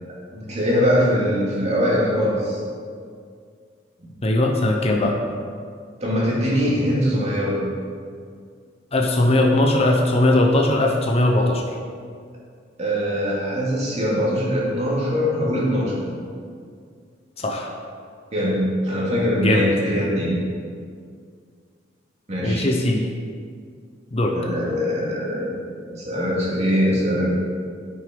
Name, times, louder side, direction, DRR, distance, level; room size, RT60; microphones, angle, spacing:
voice 1, 0.3-2.6 6.0-7.6 12.8-15.9 18.3-20.4 22.3-22.7 24.3-25.6 25.9-27.3, equal, 35° right, -5 dB, 2.4 m, -22 dB
voice 2, 4.2-5.2 8.9-11.6 17.4-17.7 19.4-19.6 22.4-23.1 24.1-24.4, left 1 dB, 35° left, 1 dB, 0.8 m, -19 dB
9.6 x 6.3 x 5.3 m, 2.1 s
head